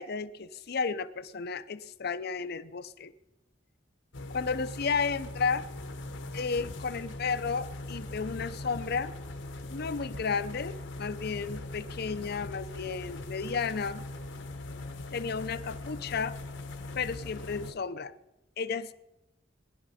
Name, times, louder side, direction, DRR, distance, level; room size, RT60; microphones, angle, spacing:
voice 1, 0.0-3.1 4.3-5.7 6.3-9.1 9.7-14.0 15.1-16.4 16.9-18.1 18.6-18.9, left 5 dB, 55° left, 13 dB, 0.6 m, -33 dB
sound 1, 4.1-17.7, left 2 dB, 75° left, 1.0 m, -41 dB
20.0 x 11.0 x 4.2 m, 0.95 s
head